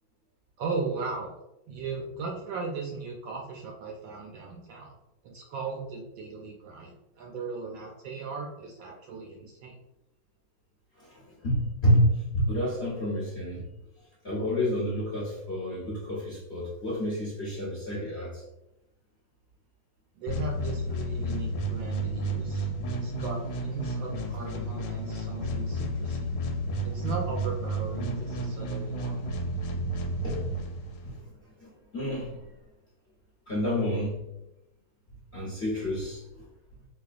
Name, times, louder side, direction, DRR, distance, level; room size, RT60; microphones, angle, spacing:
voice 1, 0.6-1.3 1.7-5.0 5.2-9.8 20.2-26.3 26.8-29.2, right 4 dB, 75° right, 0 dB, 1.1 m, -37 dB
voice 2, 11.0-13.6 14.2-18.4 26.9-27.0 30.2-30.4 31.0-31.1 31.6-32.4 33.5-34.2 35.3-36.4, equal, 50° left, -7 dB, 0.7 m, -29 dB
sound 1, 20.3-31.2, right 1 dB, 85° left, 1.5 m, -32 dB
4.1 x 2.8 x 2.4 m, 0.93 s
omnidirectional pair, 2.4 m